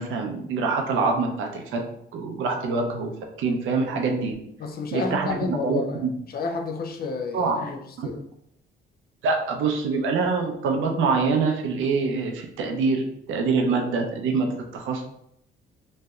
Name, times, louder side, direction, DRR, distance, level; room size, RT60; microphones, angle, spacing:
voice 1, 0.0-1.8 2.1-3.1 3.4-4.3 4.9-6.1 7.3-7.7 8.0-8.1 9.2-15.0, right 4 dB, 80° right, 3 dB, 0.6 m, -25 dB
voice 2, 4.6-6.0 6.3-8.2, left 4 dB, 50° left, 4 dB, 0.5 m, -30 dB
3.1 x 2.7 x 2.3 m, 0.73 s
cardioid pair, 90°, 20 cm